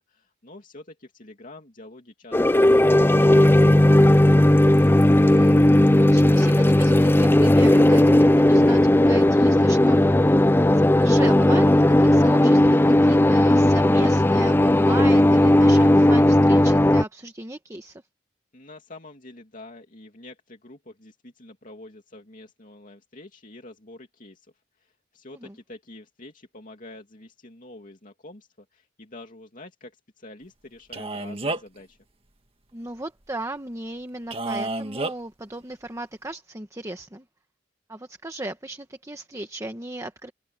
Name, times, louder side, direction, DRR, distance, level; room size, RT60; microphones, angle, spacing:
voice 1, 0.0-4.0 18.5-32.0, left 2 dB, 45° left, 2.7 m, -46 dB
sound 1, 2.3-17.0, left 1 dB, 10° left, 0.5 m, -16 dB
voice 2, 4.7-10.0 10.7-18.0 25.4-25.6 32.7-37.2 37.9-40.3, right 1 dB, 15° right, 1.3 m, -36 dB
Male speech man speaking, 30.9-31.8 34.3-35.1, right 2 dB, 30° right, 1.8 m, -29 dB
open air
head